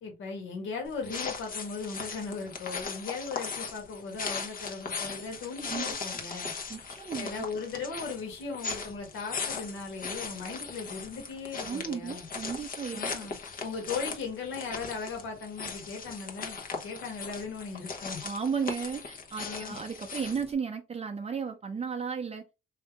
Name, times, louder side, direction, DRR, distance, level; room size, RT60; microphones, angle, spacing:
voice 1, 0.0-6.5 7.1-12.3 12.9-16.6 16.8-18.3 19.4-19.8, left 4 dB, 75° left, 1.6 m, -38 dB
sound 1, 0.9-20.5, left 5 dB, 45° left, 1.0 m, -39 dB
voice 2, 5.6-6.0 6.7-7.4 11.6-13.3 18.2-22.4, right 6 dB, 30° right, 0.6 m, -34 dB
3.5 x 2.7 x 3.5 m
cardioid pair, 90°, 20 cm